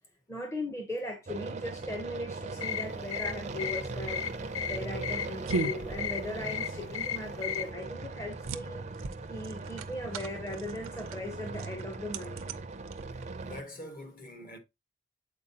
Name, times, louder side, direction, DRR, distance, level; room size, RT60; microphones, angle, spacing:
voice 1, 0.3-4.2 4.7-8.8 9.3-12.4, left 1 dB, 15° left, 0.7 m, -38 dB
sound 1, 1.3-13.6, right 3 dB, 35° right, 0.5 m, -40 dB
sound 2, 2.6-7.7, left 10 dB, 80° left, 0.4 m, -36 dB
sound 3, 4.0-13.5, right 4 dB, 80° right, 0.5 m, -40 dB
voice 2, 13.4-14.6, equal, 40° left, 1.4 m, -44 dB
7.5 x 4.5 x 2.8 m
head